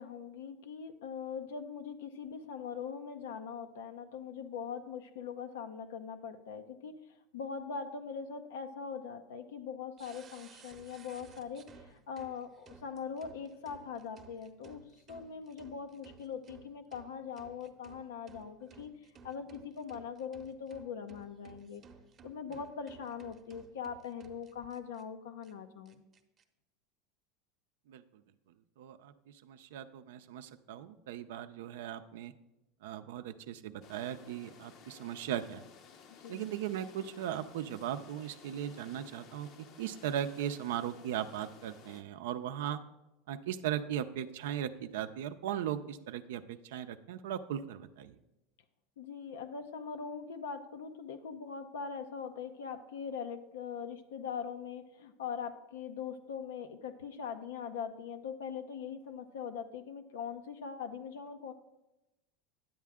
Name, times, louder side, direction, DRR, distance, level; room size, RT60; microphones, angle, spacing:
voice 1, 0.0-6.9 7.3-14.8 15.1-18.9 19.2-21.8 22.2-26.0 36.1-36.4 49.0-61.5, left 6 dB, 90° left, 8 dB, 0.7 m, -42 dB
sound 1, 10.0-25.0 25.4-25.5 25.8-26.4, right 5 dB, 30° right, 0.8 m, -57 dB
voice 2, 27.9-28.2 28.8-32.3 32.8-35.7 36.3-39.5 39.8-42.8 43.3-48.2, right 10 dB, 80° right, 9 dB, 0.5 m, -38 dB
sound 2, 33.8-42.0, left 6 dB, 50° left, 0.7 m, -56 dB
10.0 x 7.4 x 3.6 m, 0.95 s
supercardioid pair, 120°, 0 cm